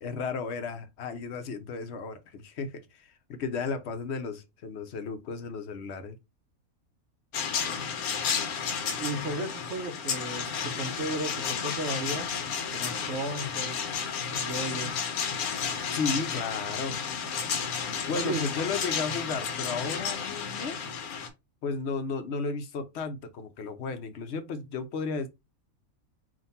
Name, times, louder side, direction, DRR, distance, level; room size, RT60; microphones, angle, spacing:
voice 1, 0.0-6.2 15.9-17.0 18.1-20.8 21.6-25.3, left 4 dB, 60° left, 0.8 m, -34 dB
sound 1, 7.3-21.3, left 6 dB, 90° left, 1.3 m, -32 dB
voice 2, 9.0-12.3 12.7-13.8 14.3-14.9 18.1-18.5, right 2 dB, 60° right, 1.0 m, -34 dB
3.7 x 2.5 x 4.0 m
omnidirectional pair, 1.5 m